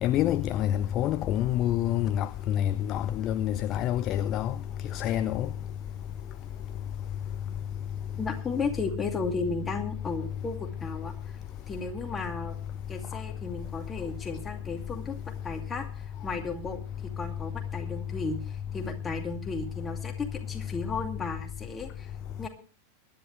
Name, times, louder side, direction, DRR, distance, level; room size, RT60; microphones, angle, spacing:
voice 1, 0.0-4.5 4.9-5.5, left 11 dB, 35° left, 0.5 m, -27 dB
voice 2, 8.2-11.1 11.7-12.6 12.9-16.8 17.2-22.1 22.4-22.5, left 4 dB, 15° left, 2.4 m, -34 dB
22.5 x 10.5 x 3.2 m
figure-of-eight pair, 90°, 0 cm